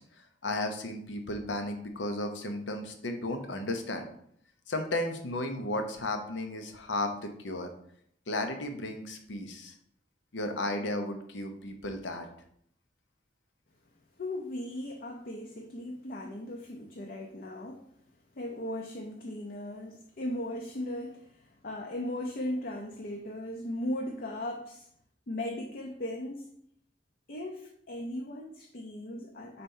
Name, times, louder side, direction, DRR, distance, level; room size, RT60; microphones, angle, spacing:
voice 1, 0.4-4.0 4.7-7.7 8.3-9.7 10.3-12.3, left 1 dB, 90° left, 6 dB, 0.9 m, -34 dB
voice 2, 14.2-17.9 18.3-24.9 25.3-26.5 27.3-29.6, left 1 dB, 50° left, 3 dB, 0.6 m, -37 dB
4.3 x 4.2 x 5.5 m, 0.68 s
head